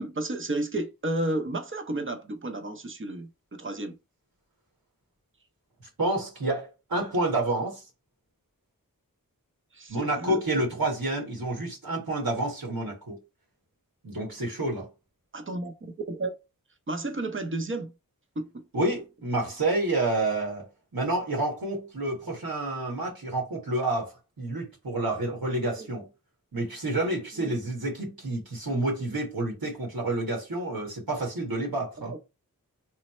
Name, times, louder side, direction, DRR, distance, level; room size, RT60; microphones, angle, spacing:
voice 1, 0.0-4.0 9.7-10.4 15.3-15.7 16.1-16.4 16.9-17.9 18.4-18.6 25.8-25.9 27.4-27.6 32.0-32.2, right 2 dB, 35° right, 0.6 m, -32 dB
voice 2, 6.0-7.8 9.9-13.2 14.0-14.9 18.7-20.7 20.9-26.1 26.5-32.1, right 2 dB, 85° right, 1.4 m, -29 dB
3.2 x 2.0 x 4.1 m
wide cardioid pair, 55°, 35 cm